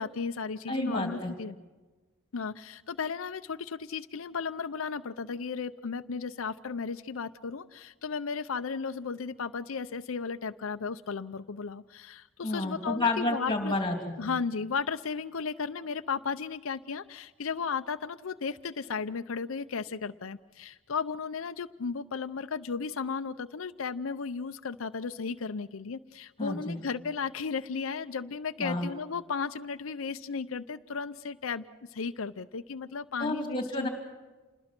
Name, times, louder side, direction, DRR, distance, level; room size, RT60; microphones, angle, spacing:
voice 1, 0.0-1.6 2.3-13.7 14.2-31.6 31.9-33.9, left 5 dB, 90° left, 9 dB, 0.6 m, -35 dB
voice 2, 0.7-1.3 12.4-14.4 26.4-26.8 28.6-28.9 33.2-33.9, left 2 dB, 25° left, 3 dB, 3.1 m, -30 dB
27.5 x 20.5 x 6.0 m, 1.2 s
head